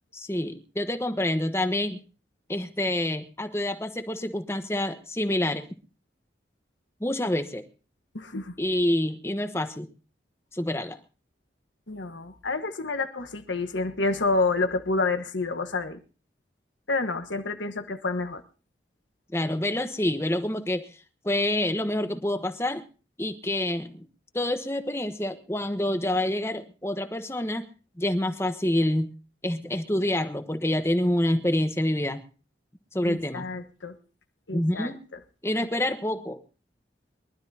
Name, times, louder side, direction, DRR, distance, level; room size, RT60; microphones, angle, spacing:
voice 1, 0.1-2.0 2.5-5.7 7.0-7.6 8.6-9.9 10.5-11.0 19.3-20.9 21.2-22.8 23.2-24.1 24.3-27.7 28.0-29.1 29.4-32.2 32.9-33.6 34.5-35.0 35.4-36.4, left 1 dB, 15° left, 9 dB, 1.0 m, -27 dB
voice 2, 8.1-8.5 11.9-16.0 16.9-18.4 33.0-33.9 34.5-34.9, left 3 dB, 85° left, 7 dB, 1.4 m, -28 dB
24.0 x 12.5 x 2.8 m, 0.34 s
head